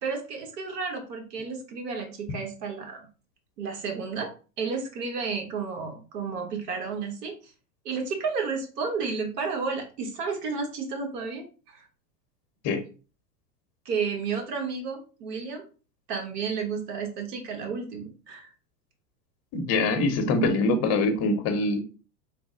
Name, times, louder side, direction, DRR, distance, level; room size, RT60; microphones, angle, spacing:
voice 1, 0.0-3.1 3.6-4.3 4.6-7.5 7.8-11.8 13.8-15.6 16.1-18.5, right 5 dB, 80° right, 3 dB, 1.3 m, -32 dB
voice 2, 19.5-21.8, left 2 dB, 35° left, 7 dB, 0.7 m, -24 dB
3.3 x 2.1 x 3.8 m, 0.35 s
supercardioid pair, 130°, 47 cm